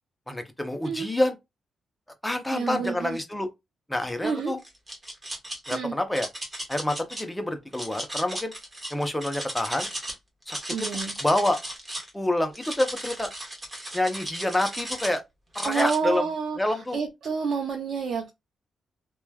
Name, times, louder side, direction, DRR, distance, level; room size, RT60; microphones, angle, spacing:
voice 1, 0.3-1.4 2.2-3.5 3.9-4.6 5.7-6.3 6.7-8.5 8.9-9.9 10.5-10.9 11.2-11.6 12.1-13.3 13.9-15.2 15.5-16.3 16.6-17.0, left 1 dB, 10° left, 0.7 m, -27 dB
voice 2, 2.5-3.2 4.2-4.5 5.7-5.9 10.7-11.1 15.6-18.3, right 5 dB, 70° right, 0.6 m, -29 dB
sound 1, 4.6-5.8 6.1-7.2 7.7-10.1 10.4-12.1 12.5-15.2 15.5-16.0, right 1 dB, 25° right, 1.3 m, -35 dB
3.0 x 2.3 x 2.2 m
cardioid pair, 70°, 0 cm